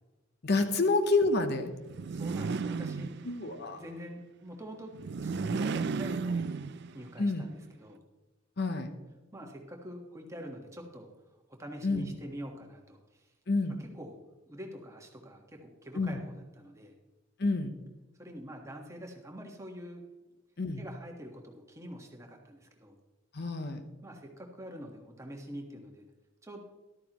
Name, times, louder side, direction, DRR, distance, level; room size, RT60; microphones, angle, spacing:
voice 1, 0.4-1.7 3.2-3.8 7.2-7.4 8.6-8.9 11.8-12.1 13.5-13.8 15.9-16.2 17.4-17.8 20.6-20.8 23.3-23.8, left 3 dB, 55° left, 8 dB, 0.9 m, -28 dB
sound 1, 1.9-3.6 4.9-7.1, right 4 dB, 55° right, 0.4 m, -34 dB
voice 2, 2.1-3.1 3.7-6.6 6.9-8.0 9.3-11.1 11.5-13.3 13.7-14.2 14.5-16.9 18.2-20.0 20.8-23.0 24.0-26.0 26.4-26.6, equal, 15° right, 1 dB, 1.4 m, -45 dB
13.5 x 12.5 x 3.0 m, 1.1 s
head